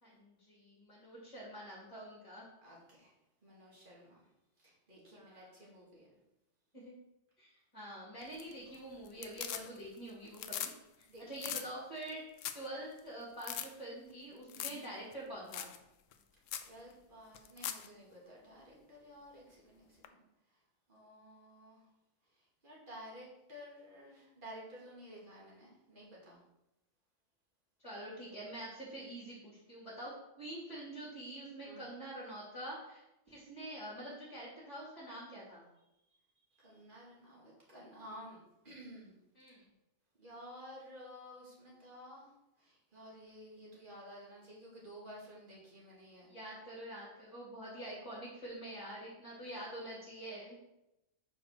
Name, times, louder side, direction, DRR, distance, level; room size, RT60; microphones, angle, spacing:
voice 1, 0.0-2.5 5.1-5.5 6.7-6.9 7.4-10.7 11.0-12.2 12.5-15.7 27.8-35.7 39.3-39.6 46.2-50.5, right 1 dB, 25° left, -9 dB, 2.6 m, -46 dB
voice 2, 2.6-3.1 3.4-4.2 4.6-6.1 11.1-11.5 14.6-14.7 16.6-20.2 20.9-21.8 22.6-26.4 31.6-31.8 36.6-38.4 38.6-39.2 40.2-42.3 42.7-46.3, equal, 40° right, -5 dB, 2.3 m, -53 dB
sound 1, 8.2-8.8 9.1-10.0 10.3-10.7 11.0-11.1 11.4-11.7 12.1-12.2 12.4-12.7 13.0-13.1 13.4-13.7 14.5-14.9 15.1-15.2 15.5-15.8 16.1-16.2 16.5-16.7 17.3-17.9 20.0-20.1, left 10 dB, 75° left, 0.9 m, -40 dB
5.2 x 4.7 x 6.0 m, 0.88 s
omnidirectional pair, 1.4 m